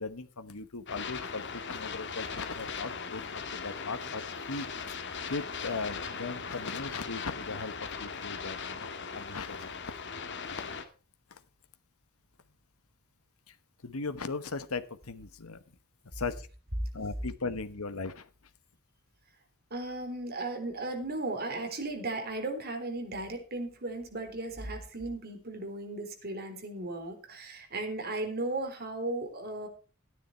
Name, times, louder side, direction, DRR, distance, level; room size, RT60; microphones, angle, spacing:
voice 1, 0.0-3.2 3.5-4.9 5.3-7.7 8.0-10.0 10.4-10.6 11.3-11.4 13.5-13.6 13.8-15.6 16.1-16.5 16.9-18.3, left 4 dB, 80° left, 10 dB, 1.2 m, -38 dB
sound 1, 0.9-10.8, left 5 dB, 55° left, 1.8 m, -39 dB
voice 2, 19.7-29.7, right 2 dB, 45° right, 5 dB, 3.5 m, -36 dB
13.5 x 10.0 x 4.5 m, 0.35 s
head